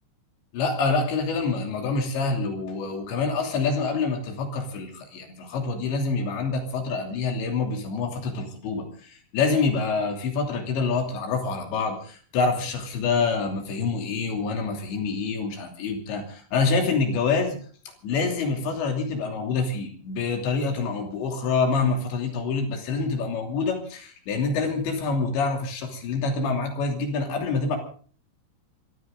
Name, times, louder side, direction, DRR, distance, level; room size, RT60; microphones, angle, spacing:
voice 1, 0.5-17.6 18.0-27.8, left 4 dB, 70° left, 3 dB, 5.1 m, -26 dB
25.5 x 14.5 x 3.8 m, 0.44 s
omnidirectional pair, 5.5 m